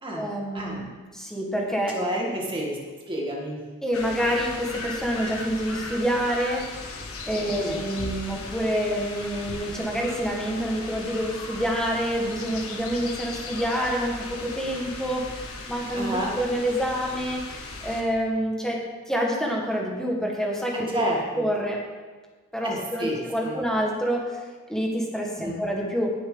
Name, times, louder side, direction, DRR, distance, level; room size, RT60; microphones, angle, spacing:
voice 1, 0.2-2.0 3.8-6.7 7.3-21.1 21.4-21.8 22.5-24.4 24.7-26.1, equal, 5° left, -1 dB, 1.8 m, -27 dB
voice 2, 1.9-2.8 3.1-3.6 7.3-7.8 16.0-16.3 20.7-21.4 22.6-23.6 25.4-25.6, equal, 25° right, -3 dB, 2.0 m, -30 dB
sound 1, 3.9-18.0, left 3 dB, 90° left, 1.7 m, -37 dB
17.5 x 7.0 x 4.0 m, 1.4 s
head